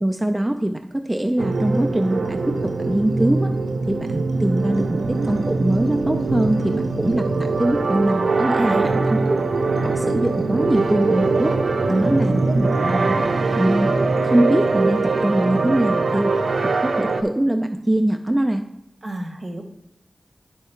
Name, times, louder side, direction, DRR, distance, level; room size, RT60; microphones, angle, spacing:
voice 1, 0.0-2.6 2.8-3.5 3.9-9.5 9.8-11.5 11.9-13.2 13.6-13.9 14.2-16.3 16.6-18.6, right 1 dB, 15° right, 5 dB, 0.4 m, -22 dB
sound 1, 1.4-17.2, right 3 dB, 85° right, 0.5 m, -22 dB
voice 2, 8.6-9.0 11.9-12.2 16.1-16.2 19.0-19.6, right 1 dB, 45° right, 2 dB, 1.1 m, -31 dB
10.5 x 3.6 x 4.4 m, 0.82 s
wide cardioid pair, 80°, 0 cm